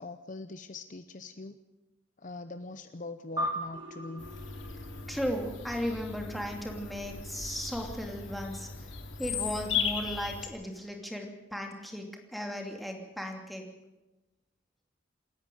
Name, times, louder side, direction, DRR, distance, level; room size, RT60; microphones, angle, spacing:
voice 1, 0.0-1.6 2.2-4.3, left 3 dB, 40° left, 10 dB, 0.7 m, -42 dB
sound 1, 3.4-6.1, equal, 20° right, 2.1 m, -38 dB
sound 2, 3.7-10.3, left 2 dB, 65° right, 3.3 m, -53 dB
Bird vocalization bird call bird song, 4.2-10.5, left 6 dB, 65° left, 2.8 m, -37 dB
voice 2, 5.1-8.9 9.2-13.6, equal, ahead, 2 dB, 2.7 m, -36 dB
28.0 x 10.5 x 9.3 m, 1.0 s
head